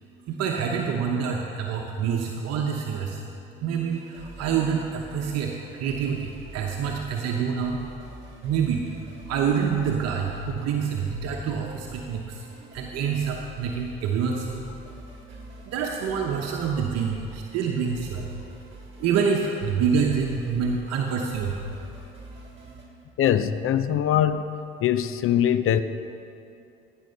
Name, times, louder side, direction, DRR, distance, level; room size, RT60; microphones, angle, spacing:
voice 1, 0.3-3.2 3.6-7.8 8.4-8.8 9.3-12.5 12.7-14.7 15.3-15.4 15.7-18.4 19.0-21.6, right 6 dB, 60° right, 1 dB, 1.0 m, -27 dB
sound 1, 3.9-22.9, right 1 dB, 20° right, 3.1 m, -46 dB
voice 2, 23.2-25.8, left 10 dB, 45° left, 12 dB, 0.6 m, -22 dB
15.5 x 6.3 x 5.6 m, 2.7 s
hypercardioid pair, 60°, 29 cm